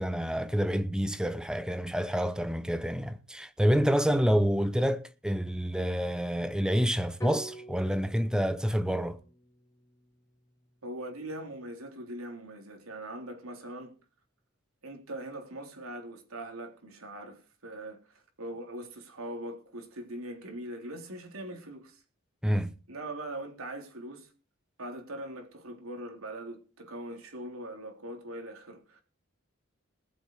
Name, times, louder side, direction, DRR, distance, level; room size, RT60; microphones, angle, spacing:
voice 1, 0.0-9.2 22.4-22.7, equal, 5° right, 0.7 m, -28 dB
sound 1, 7.2-11.3, equal, 15° left, 3.3 m, -47 dB
voice 2, 10.8-13.9 14.8-22.0 22.9-24.3 24.8-29.0, right 1 dB, 90° right, 3.7 m, -41 dB
20.0 x 8.1 x 4.8 m
head